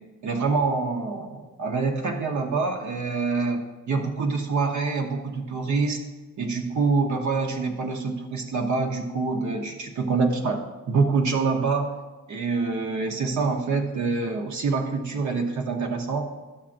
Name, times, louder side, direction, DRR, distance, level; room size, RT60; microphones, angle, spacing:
voice 1, 0.2-6.0 6.4-10.6 10.9-11.9 12.3-16.2, right 4 dB, 75° right, 3 dB, 1.0 m, -26 dB
11.5 x 7.3 x 2.6 m, 1.2 s
wide cardioid pair, 155°, 30 cm